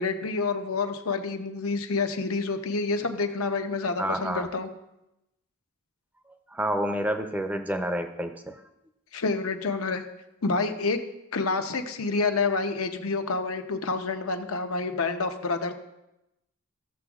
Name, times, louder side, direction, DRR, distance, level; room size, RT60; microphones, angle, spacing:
voice 1, 0.0-4.7 9.1-10.0 10.4-11.0 11.3-15.7, left 4 dB, 80° left, 6 dB, 0.8 m, -28 dB
voice 2, 4.0-4.5 6.5-8.6, right 1 dB, 5° right, 7 dB, 0.5 m, -29 dB
15.0 x 7.0 x 2.4 m, 0.89 s
head